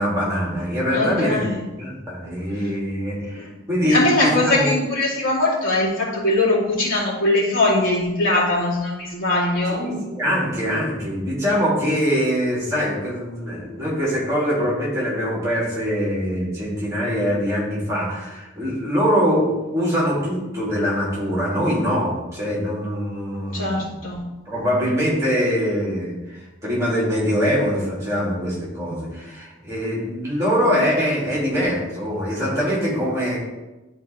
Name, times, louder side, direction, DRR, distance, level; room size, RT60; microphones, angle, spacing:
voice 1, 0.0-1.4 1.8-4.7 9.7-23.9 24.5-33.4, equal, 15° right, -6 dB, 2.7 m, -23 dB
voice 2, 0.9-1.6 3.3-3.5 3.9-9.8 23.5-24.2, left 2 dB, 80° left, -6 dB, 2.6 m, -21 dB
11.0 x 4.3 x 3.5 m, 1.1 s
head